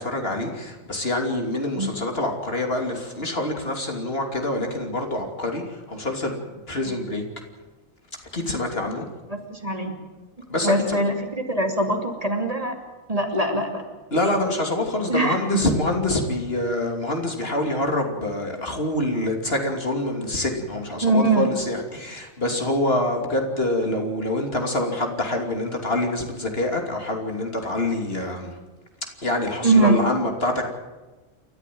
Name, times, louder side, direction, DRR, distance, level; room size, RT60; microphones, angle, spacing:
voice 1, 0.0-7.2 8.3-9.1 10.5-11.0 14.1-28.5 29.2-30.7, left 1 dB, 45° left, 2 dB, 3.2 m, -26 dB
voice 2, 9.3-9.9 10.6-12.8 13.1-13.8 15.1-15.6 21.0-21.5 29.6-30.0, right 2 dB, 25° right, 3 dB, 2.7 m, -22 dB
29.5 x 13.5 x 7.7 m, 1.2 s
omnidirectional pair, 1.4 m